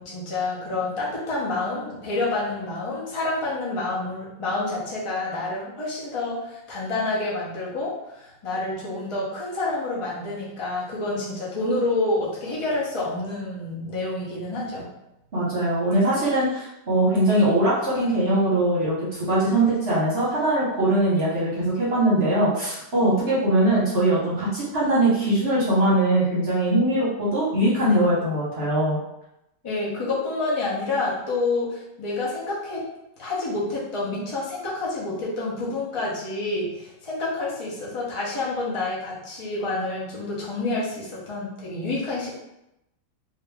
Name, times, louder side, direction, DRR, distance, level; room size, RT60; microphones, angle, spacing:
voice 1, 0.0-14.9 29.6-32.9 33.2-42.3, left 2 dB, 30° left, -6 dB, 0.5 m, -28 dB
voice 2, 15.3-29.0, right 1 dB, 40° right, -8 dB, 1.0 m, -21 dB
2.9 x 2.7 x 3.4 m, 0.86 s
omnidirectional pair, 1.9 m